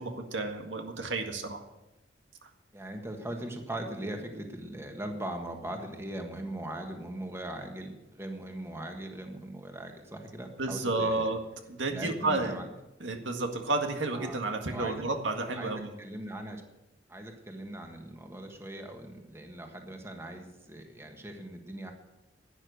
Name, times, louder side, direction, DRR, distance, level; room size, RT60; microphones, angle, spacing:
voice 1, 0.0-1.6 2.4-2.5 10.6-11.4 11.7-12.7 13.0-15.9, right 2 dB, 90° right, 4 dB, 1.8 m, -31 dB
voice 2, 2.7-11.3 11.9-12.7 14.1-14.4 14.7-15.0 15.5-16.6 17.1-21.9, right 1 dB, 15° right, 4 dB, 1.5 m, -40 dB
12.0 x 9.9 x 6.5 m, 0.95 s
head